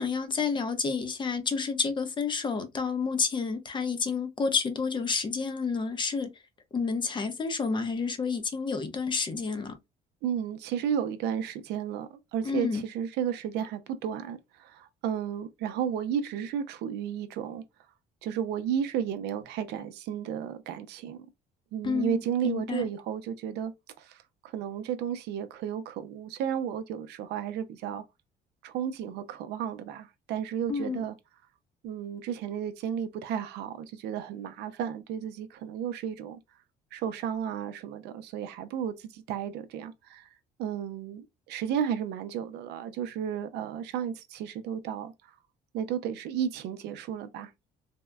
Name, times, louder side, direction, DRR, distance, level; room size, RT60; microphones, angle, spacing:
voice 1, 0.0-6.3 6.7-9.8 12.4-12.8 21.8-22.9 30.7-31.0, left 5 dB, 30° left, 0.6 m, -30 dB
voice 2, 10.2-17.6 18.2-21.3 21.7-23.7 24.0-28.0 28.6-31.2 31.8-36.4 36.9-40.3 40.6-45.1 45.7-47.5, right 9 dB, 80° right, 0.5 m, -33 dB
3.5 x 2.0 x 2.2 m
cardioid pair, 110°, 17 cm